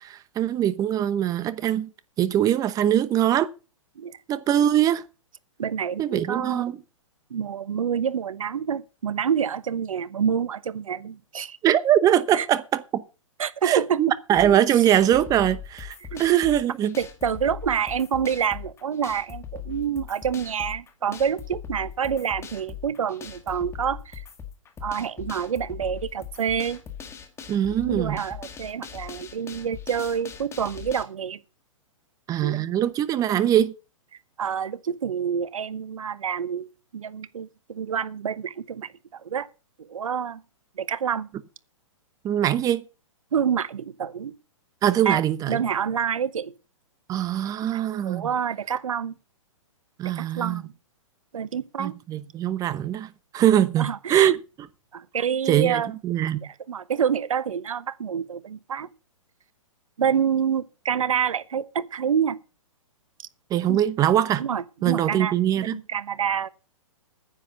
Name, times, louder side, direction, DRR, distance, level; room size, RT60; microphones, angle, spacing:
voice 1, 0.0-1.9 2.2-3.5 4.3-5.0 6.0-6.8 11.6-13.0 13.6-17.0 27.5-28.2 32.3-33.7 42.2-42.8 44.8-45.6 47.1-48.3 50.0-50.6 51.8-54.4 55.5-56.4 63.5-64.4 64.8-65.8, right 11 dB, 20° right, 0.9 m, -22 dB
voice 2, 5.6-6.7 7.3-11.6 12.3-12.5 13.4-14.1 14.8-14.9 16.1-16.2 17.0-24.2 24.8-26.8 27.8-31.4 32.4-32.6 34.4-39.5 39.8-40.4 40.8-41.3 43.3-44.3 45.0-46.5 47.6-49.2 50.0-50.7 51.3-51.9 53.8-54.3 54.9-55.9 56.4-58.9 60.0-62.4 63.7-63.8 64.4-65.4 65.7-66.5, right 7 dB, 75° right, 1.0 m, -27 dB
sound 1, 14.3-31.0, left 8 dB, 15° left, 1.9 m, -40 dB
9.8 x 8.4 x 6.6 m
hypercardioid pair, 130°, 17 cm